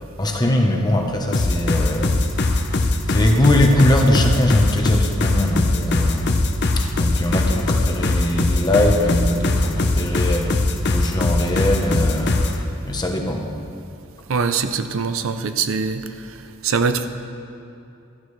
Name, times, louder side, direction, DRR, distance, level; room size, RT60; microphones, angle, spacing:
voice 1, 0.0-2.1 2.8-6.4 6.8-12.4 12.8-13.5, left 1 dB, 20° left, 2 dB, 1.0 m, -21 dB
sound 1, 1.3-12.6, left 2 dB, 55° left, 0.7 m, -20 dB
voice 2, 14.3-16.0 16.6-17.1, right 5 dB, 80° right, 9 dB, 0.6 m, -22 dB
14.5 x 12.5 x 3.3 m, 2.6 s
head